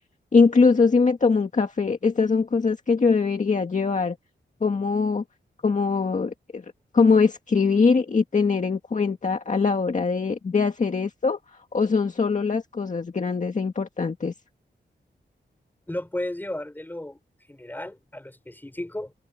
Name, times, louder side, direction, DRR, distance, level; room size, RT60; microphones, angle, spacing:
voice 1, 0.3-4.2 4.6-5.2 5.6-6.7 6.9-14.3, left 4 dB, 40° left, 1.8 m, -22 dB
voice 2, 15.9-17.2 17.5-19.1, left 1 dB, 10° left, 6.5 m, -34 dB
wide cardioid pair, 180°, 19 cm